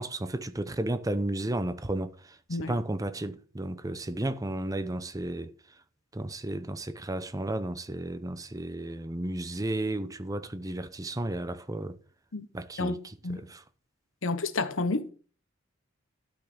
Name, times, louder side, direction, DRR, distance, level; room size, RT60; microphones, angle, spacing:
voice 1, 0.0-5.5 6.1-12.0 12.5-13.6, right 1 dB, 15° right, 0.7 m, -33 dB
voice 2, 14.2-15.1, left 3 dB, 80° left, 1.1 m, -30 dB
12.5 x 5.6 x 6.1 m
head